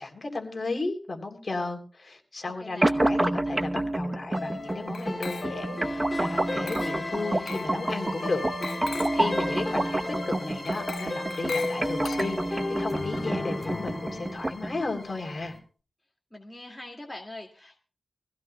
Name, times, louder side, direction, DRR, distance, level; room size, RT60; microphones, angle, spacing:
voice 1, 0.0-8.4 8.8-15.6, left 3 dB, 40° left, 3 dB, 3.1 m, -34 dB
voice 2, 2.4-2.9 9.2-9.7 16.3-17.8, left 1 dB, 10° left, 0 dB, 2.1 m, -43 dB
sound 1, 2.8-14.8, right 1 dB, 20° right, 0.8 m, -29 dB
sound 2, 4.3-15.6, left 2 dB, 25° left, 3.3 m, -35 dB
Glass, 4.9-5.8 6.7-7.1 7.5-7.8 8.6-9.3 10.7-12.7, left 5 dB, 75° left, 0.7 m, -39 dB
24.0 x 16.0 x 2.2 m, 0.36 s
wide cardioid pair, 100°, 0 cm